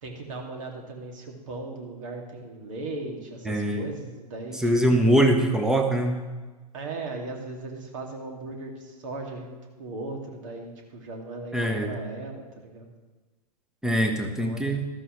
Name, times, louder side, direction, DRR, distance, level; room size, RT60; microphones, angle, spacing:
voice 1, 0.0-5.0 6.7-12.9 14.4-14.6, right 2 dB, 50° right, 2 dB, 2.5 m, -38 dB
voice 2, 3.4-3.9 4.6-6.2 11.5-11.9 13.8-14.8, right 1 dB, 5° right, 4 dB, 1.2 m, -22 dB
13.5 x 13.0 x 3.2 m, 1.3 s
figure-of-eight pair, 105°, 21 cm